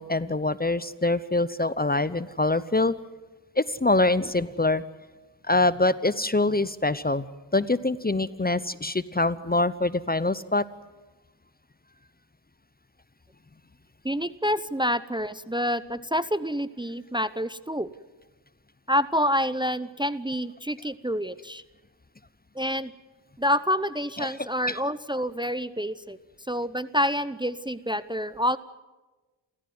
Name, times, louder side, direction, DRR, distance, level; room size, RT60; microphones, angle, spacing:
voice 1, 0.0-2.9 3.6-4.8 5.4-7.3 7.5-10.6 24.2-24.4 24.7-24.8, left 2 dB, 20° left, 17 dB, 0.8 m, -24 dB
voice 2, 14.0-17.9 18.9-21.6 22.5-22.9 23.4-26.2 26.5-28.6, equal, 10° right, 15 dB, 0.8 m, -27 dB
29.5 x 14.5 x 9.5 m, 1.2 s
cardioid pair, 50°, 48 cm